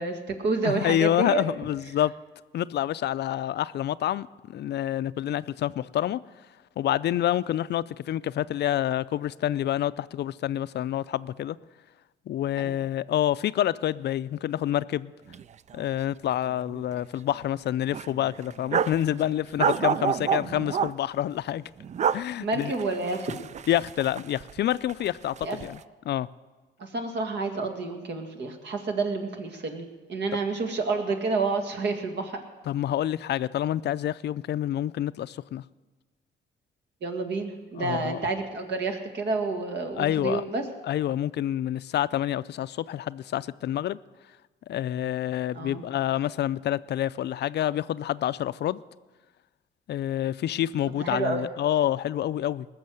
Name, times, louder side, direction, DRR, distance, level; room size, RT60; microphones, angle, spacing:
voice 1, 0.0-1.4 12.6-12.7 22.4-23.3 25.4-25.6 26.8-32.4 37.0-40.6 45.5-45.8 51.0-51.5, right 3 dB, 60° right, 2.0 m, -29 dB
voice 2, 0.6-2.1 2.5-6.2 6.8-11.6 12.3-15.1 15.7-21.6 22.1-22.7 23.7-25.8 26.0-26.3 32.7-35.6 37.8-38.2 39.9-40.4 40.8-44.0 44.7-48.8 49.9-52.7, left 12 dB, 60° left, 0.4 m, -27 dB
sound 1, 15.3-15.4 15.7-15.8 16.3-16.9 17.3-17.4 17.9-19.0 19.6-20.9 21.8-22.2 22.6-24.6 24.9-25.7, right 8 dB, 35° right, 0.3 m, -28 dB
19.5 x 6.8 x 7.8 m
cardioid pair, 90°, 20 cm